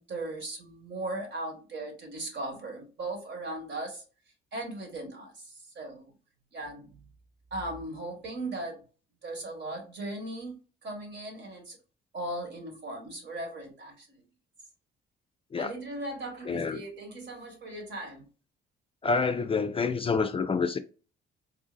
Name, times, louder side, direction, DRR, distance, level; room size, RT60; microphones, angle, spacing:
voice 1, 0.0-4.0 4.5-5.3 5.7-6.1 6.5-7.0 7.5-8.8 9.2-10.5 10.8-11.8 12.1-14.1 15.6-18.3, right 2 dB, 60° right, 1.5 m, -38 dB
voice 2, 16.5-16.8 19.0-20.8, left 4 dB, 30° left, 0.3 m, -27 dB
3.7 x 2.6 x 2.5 m
cardioid pair, 90°, 20 cm